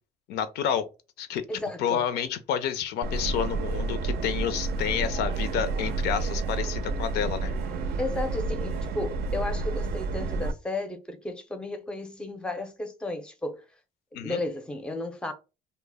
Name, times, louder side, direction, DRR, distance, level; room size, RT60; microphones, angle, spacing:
voice 1, 0.3-0.9 1.2-1.4 1.8-7.5 14.1-14.4, left 8 dB, 80° left, 0.4 m, -29 dB
voice 2, 1.5-2.0 8.0-13.6 14.1-15.3, left 2 dB, 5° left, 0.5 m, -33 dB
Subway metro underground, 3.0-10.5, right 3 dB, 70° right, 0.5 m, -30 dB
2.1 x 2.0 x 3.3 m
cardioid pair, 110°, 17 cm